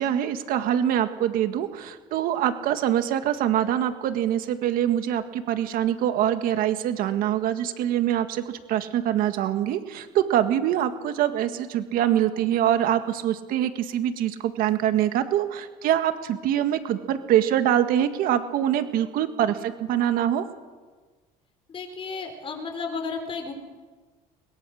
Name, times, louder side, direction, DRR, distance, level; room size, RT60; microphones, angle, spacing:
voice 1, 0.0-20.4, right 11 dB, 65° right, 9 dB, 1.8 m, -24 dB
voice 2, 21.7-23.5, left 4 dB, 35° left, 4 dB, 5.0 m, -33 dB
22.0 x 21.5 x 6.5 m, 1.4 s
cardioid pair, 110°, 16 cm